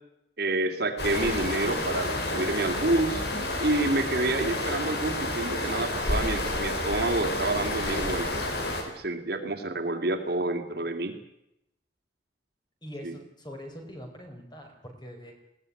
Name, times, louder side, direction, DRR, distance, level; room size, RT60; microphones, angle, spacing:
voice 1, 0.4-3.2 3.6-8.5 8.9-11.1 13.0-13.1, right 2 dB, 60° right, 5 dB, 2.6 m, -28 dB
sound 1, 1.0-8.8, left 1 dB, 60° left, 4.6 m, -30 dB
voice 2, 12.8-15.3, equal, 25° left, 4 dB, 4.8 m, -43 dB
21.0 x 17.0 x 9.8 m, 0.83 s
head